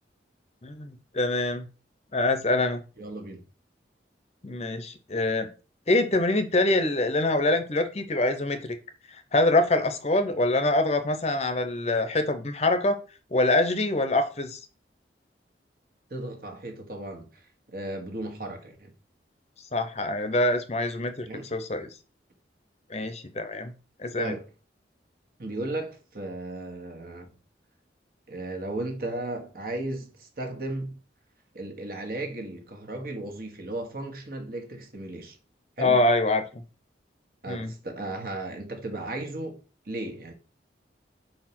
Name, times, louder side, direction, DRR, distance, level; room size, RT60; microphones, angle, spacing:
voice 1, 0.6-1.7 2.1-2.8 4.4-5.5 5.9-8.8 9.3-13.0 13.3-14.6 19.7-21.9 22.9-23.7 24.0-24.4 35.8-36.6 37.5-37.7, left 2 dB, 35° left, 0.7 m, -25 dB
voice 2, 3.0-3.4 16.1-18.9 21.2-21.5 24.2-24.4 25.4-27.3 28.3-31.0 31.5-35.4 35.8-36.0 37.4-39.6 39.8-40.3, right 2 dB, 55° right, 1.5 m, -35 dB
4.7 x 4.5 x 6.0 m
head